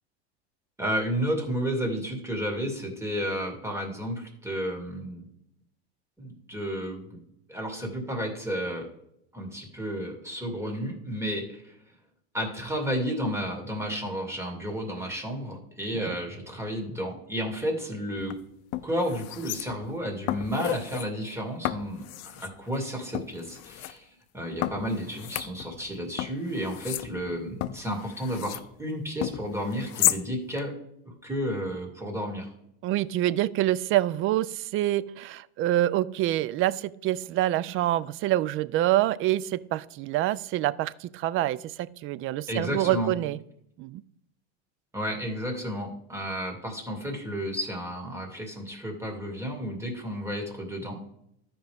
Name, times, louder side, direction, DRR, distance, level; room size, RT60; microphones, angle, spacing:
voice 1, 0.8-5.3 6.2-7.2 7.5-8.9 9.3-11.7 12.3-18.3 18.8-24.1 24.3-30.7 31.2-32.5 42.5-43.1 44.9-51.1, equal, 10° right, 2.3 m, -32 dB
sound 1, 18.2-18.3 18.7-19.9 20.3-21.1 21.6-22.5 23.1-23.9 24.6-25.9 26.2-28.7 29.2-30.2 30.6-30.7, left 16 dB, 50° left, 0.6 m, -32 dB
voice 2, 32.8-43.4 43.8-44.0, right 14 dB, 40° right, 0.4 m, -26 dB
13.5 x 5.2 x 3.5 m
supercardioid pair, 100°, 33 cm